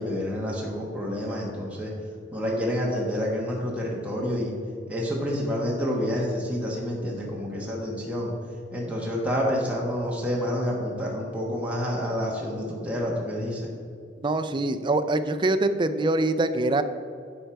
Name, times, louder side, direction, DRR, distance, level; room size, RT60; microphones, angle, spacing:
voice 1, 0.0-1.9 2.3-4.6 4.9-8.3 8.7-13.7, equal, 10° right, -4 dB, 1.3 m, -28 dB
voice 2, 14.2-16.8, right 2 dB, 25° right, 9 dB, 0.4 m, -24 dB
10.5 x 4.6 x 4.6 m, 2.4 s
head